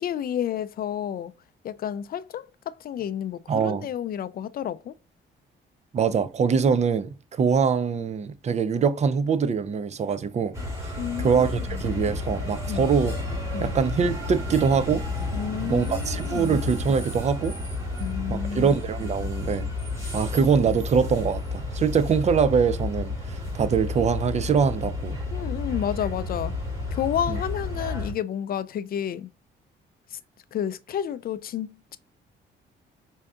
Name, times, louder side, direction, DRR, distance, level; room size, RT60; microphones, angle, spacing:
voice 1, 0.0-1.3 1.6-4.9 11.0-11.8 12.7-12.9 13.5-13.7 15.3-16.6 18.0-18.7 25.3-26.5 26.9-29.3 30.1-30.2 30.5-32.0, left 9 dB, 50° left, 0.4 m, -31 dB
voice 2, 3.5-3.9 5.9-10.6 11.2-13.1 13.6-15.0 15.7-17.6 18.3-19.7 20.1-25.2 27.3-27.4, right 6 dB, 35° right, 0.4 m, -23 dB
sound 1, 10.5-28.1, left 2 dB, 15° right, 2.0 m, -31 dB
4.4 x 2.7 x 2.3 m
cardioid pair, 90°, 20 cm